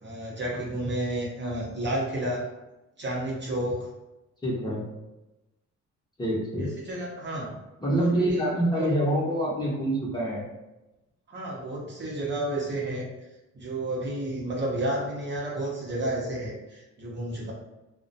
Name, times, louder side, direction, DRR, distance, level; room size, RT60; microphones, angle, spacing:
voice 1, 0.0-2.4 3.0-3.9 6.6-7.6 7.9-8.5 8.8-8.9 11.3-13.0 13.5-17.5, right 1 dB, 40° right, -4 dB, 0.7 m, -31 dB
voice 2, 4.4-4.8 6.2-6.7 7.8-10.5, right 1 dB, 15° left, -6 dB, 0.8 m, -26 dB
2.4 x 2.1 x 2.6 m, 1.0 s
cardioid pair, 90°, 30 cm